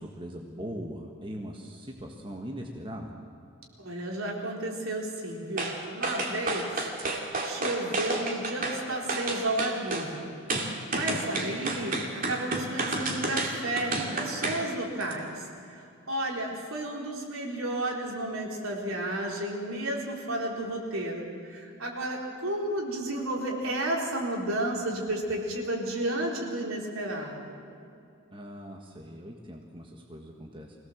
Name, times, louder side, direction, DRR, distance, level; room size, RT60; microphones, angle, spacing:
voice 1, 0.0-3.1 28.3-30.7, equal, 25° right, 1 dB, 1.5 m, -40 dB
voice 2, 3.8-6.8 7.4-10.3 10.6-27.6, right 1 dB, 65° right, 0 dB, 3.9 m, -32 dB
sound 1, 5.6-5.8 6.0-8.8 9.1-10.1 10.5-14.6 15.0-15.1, right 2 dB, 40° right, 2.6 m, -30 dB
24.5 x 18.0 x 7.3 m, 2.5 s
head